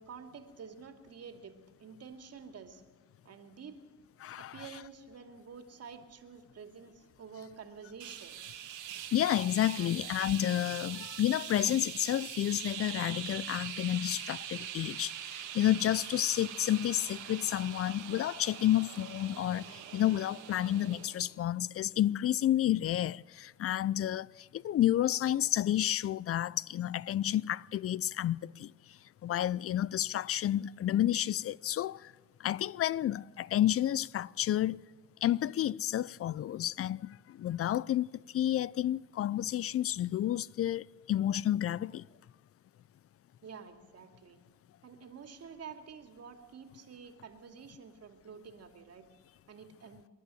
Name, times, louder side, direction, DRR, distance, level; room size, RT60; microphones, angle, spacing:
voice 1, 0.0-1.5 1.8-2.8 3.2-3.8 4.4-8.4 9.7-10.1 43.4-44.4 44.8-49.0 49.5-50.1, right 6 dB, 55° right, 2.6 m, -49 dB
voice 2, 4.2-4.5 9.1-32.1 32.4-34.8 35.2-42.1, left 12 dB, 50° left, 0.5 m, -30 dB
sound 1, 8.0-21.3, right 10 dB, 80° right, 2.1 m, -43 dB
26.5 x 11.5 x 9.2 m
cardioid pair, 90°, 30 cm